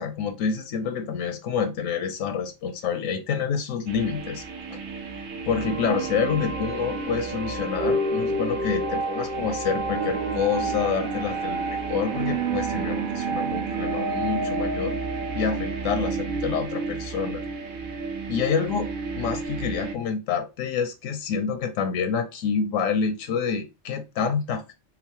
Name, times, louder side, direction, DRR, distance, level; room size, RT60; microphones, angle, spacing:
voice 1, 0.0-4.4 4.7-5.1 5.5-14.9 15.3-17.4 18.3-24.7, left 6 dB, 85° left, 7 dB, 1.0 m, -28 dB
sound 1, 3.9-19.9, right 4 dB, 80° right, 1.1 m, -33 dB
sound 2, 5.5-16.8, right 2 dB, 50° right, 0.8 m, -30 dB
3.9 x 2.0 x 4.4 m, 0.27 s
omnidirectional pair, 1.3 m